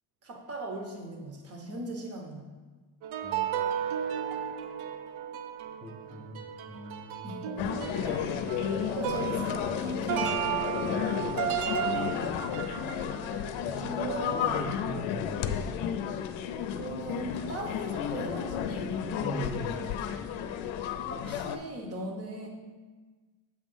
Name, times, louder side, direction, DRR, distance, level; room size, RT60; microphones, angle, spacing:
voice 1, 0.2-2.5 7.2-7.7 8.9-10.2 12.0-12.2 13.7-14.5 16.7-19.2 21.2-22.5, right 1 dB, 30° right, 2 dB, 0.9 m, -38 dB
sound 1, 3.0-14.3 14.6-14.7, right 9 dB, 90° right, 0.6 m, -34 dB
voice 2, 5.8-7.4 10.7-11.1 13.7-13.9 14.3-15.3 19.2-19.9, right 1 dB, ahead, 0 dB, 0.5 m, -40 dB
sound 2, 7.6-21.6, left 8 dB, 80° left, 0.6 m, -32 dB
7.7 x 3.0 x 5.4 m, 1.3 s
cardioid pair, 170°, 47 cm